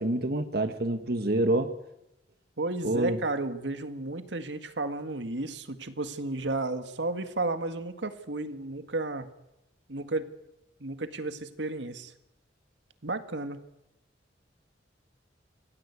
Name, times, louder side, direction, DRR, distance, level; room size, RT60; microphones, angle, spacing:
voice 1, 0.0-1.7 2.8-3.2, right 1 dB, 60° right, 7 dB, 1.6 m, -27 dB
voice 2, 2.6-9.3 9.9-10.3 10.8-12.1 13.0-13.6, right 2 dB, 80° right, 9 dB, 1.9 m, -33 dB
27.5 x 18.0 x 8.4 m, 0.88 s
head